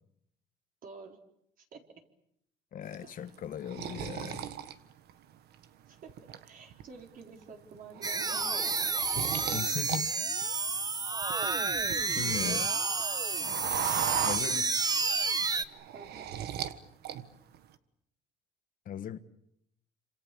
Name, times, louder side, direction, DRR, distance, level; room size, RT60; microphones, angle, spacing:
voice 1, 0.8-1.2 1.6-1.8 5.9-6.1 6.4-8.8 9.1-9.6 15.9-16.4, right 4 dB, 55° right, 4.3 m, -49 dB
voice 2, 2.7-4.5 9.5-10.1 12.1-12.7 14.2-14.8 18.8-19.2, left 9 dB, 55° left, 1.5 m, -38 dB
sound 1, 2.9-5.6 6.1-6.8 7.2-7.4 7.7-10.0 10.3-12.4 12.7-15.0 15.4-16.8 17.0-17.6, right 9 dB, 70° right, 1.5 m, -37 dB
sound 2, 8.0-15.6, right 4 dB, 25° right, 1.2 m, -30 dB
27.5 x 26.5 x 7.0 m
cardioid pair, 110°, 17 cm